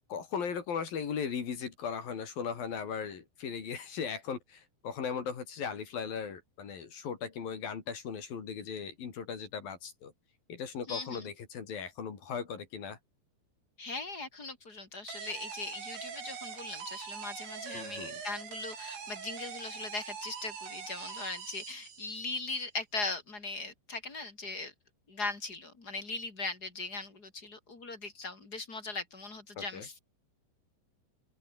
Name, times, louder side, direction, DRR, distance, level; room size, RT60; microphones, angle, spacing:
voice 1, 0.1-10.1 10.5-13.0 17.7-18.1 29.6-29.9, left 6 dB, 50° left, 4.6 m, -38 dB
voice 2, 10.9-11.3 13.8-24.7 25.1-30.1, left 3 dB, 20° left, 3.3 m, -39 dB
sound 1, 15.1-22.4, right 6 dB, 85° right, 8.2 m, -43 dB
open air
omnidirectional pair, 5.6 m